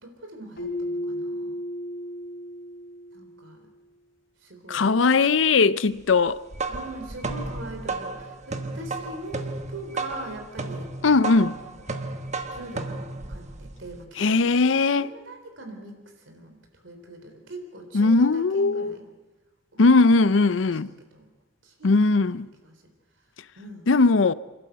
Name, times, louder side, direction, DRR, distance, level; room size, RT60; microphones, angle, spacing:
voice 1, 0.0-1.6 3.1-3.7 4.4-4.9 6.7-10.9 11.5-12.1 12.5-13.0 13.3-14.5 14.9-16.6 16.8-19.1 19.7-19.8 20.1-20.5 21.1-21.3 21.6-21.9 22.3-22.8 23.6-23.9, right 1 dB, 70° right, 3.8 m, -42 dB
Keyboard (musical), 0.6-3.4, left 1 dB, 55° left, 3.4 m, -33 dB
voice 2, 4.7-6.4 11.0-11.6 14.2-15.1 17.9-19.0 19.8-20.9 21.8-22.5 23.9-24.3, left 3 dB, 70° left, 0.6 m, -19 dB
sound 1, 6.3-14.0, right 3 dB, 35° right, 1.2 m, -33 dB
27.0 x 12.0 x 8.1 m
head